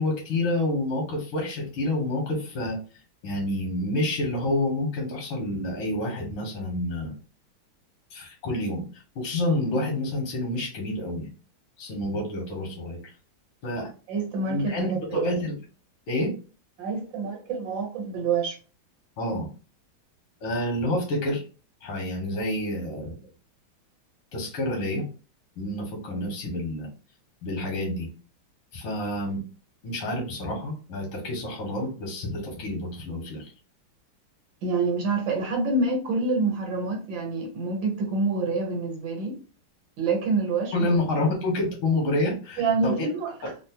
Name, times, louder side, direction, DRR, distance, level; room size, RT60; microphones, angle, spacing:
voice 1, 0.0-2.8 3.2-7.1 8.1-11.3 11.8-13.0 13.6-13.9 14.5-15.6 16.1-16.3 19.2-19.5 20.4-21.4 21.8-23.2 24.3-25.0 25.6-26.9 27.4-28.1 28.7-29.4 29.8-33.5 40.7-43.1 43.4-43.5, left 1 dB, 90° left, 2.0 m, -28 dB
voice 2, 14.1-15.3 16.8-18.5 34.6-39.4 40.0-40.9 42.6-43.5, right 3 dB, 70° right, 1.7 m, -27 dB
4.2 x 2.0 x 2.8 m
omnidirectional pair, 2.2 m